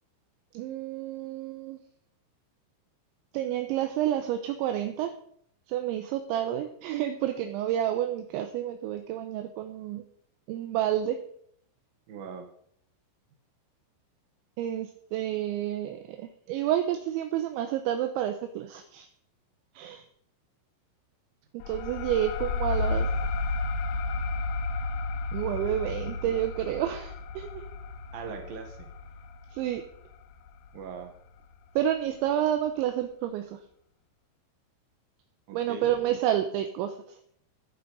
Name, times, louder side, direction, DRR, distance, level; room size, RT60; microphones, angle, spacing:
voice 1, 0.5-1.8 3.3-5.1 5.7-10.0 10.5-11.2 14.6-19.1 19.8-20.0 21.5-23.1 25.3-27.7 29.5-29.8 31.8-33.6 35.5-37.2, right 11 dB, 80° right, 7 dB, 3.0 m, -29 dB
voice 2, 12.1-12.5 26.2-26.3 28.1-28.9 30.7-31.1 35.5-35.9, right 5 dB, 65° right, 4 dB, 2.6 m, -40 dB
sound 1, 21.6-30.8, left 3 dB, 85° left, 2.3 m, -32 dB
13.5 x 11.5 x 4.0 m, 0.67 s
omnidirectional pair, 5.6 m